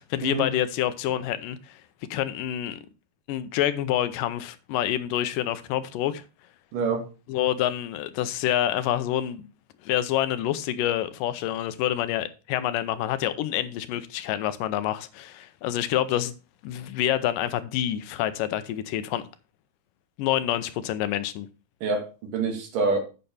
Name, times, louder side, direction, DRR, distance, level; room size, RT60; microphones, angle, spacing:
voice 1, 0.0-1.8 2.1-2.8 3.3-6.2 7.3-9.4 9.8-16.3 16.6-19.2 20.2-21.5, left 12 dB, 85° left, 2.3 m, -27 dB
voice 2, 6.7-7.0 21.8-23.0, right 3 dB, 80° right, 3.4 m, -26 dB
8.6 x 6.6 x 4.2 m
omnidirectional pair, 3.8 m